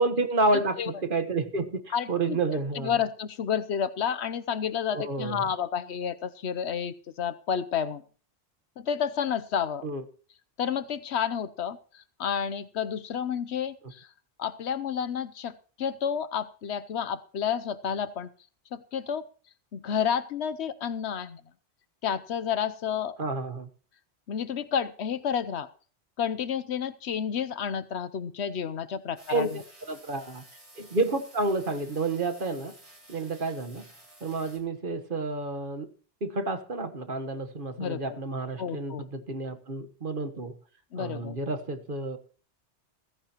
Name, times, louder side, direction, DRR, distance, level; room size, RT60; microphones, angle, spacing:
voice 1, 0.0-3.0 4.9-5.4 9.8-10.0 23.2-23.7 29.3-30.4 30.8-32.7 33.1-33.8 34.2-35.9 36.2-40.6 40.9-42.2, right 3 dB, 50° right, 8 dB, 1.5 m, -30 dB
voice 2, 0.5-0.9 1.9-8.0 8.8-9.9 10.6-14.1 14.4-18.3 18.7-19.2 19.7-21.4 22.0-23.2 24.3-25.7 26.2-29.5 37.8-38.0 38.6-39.0 40.9-41.4, left 8 dB, 70° left, 14 dB, 1.0 m, -30 dB
sound 1, 29.2-34.6, right 1 dB, 30° right, 3.7 m, -53 dB
16.5 x 15.0 x 3.0 m, 0.42 s
omnidirectional pair, 1.2 m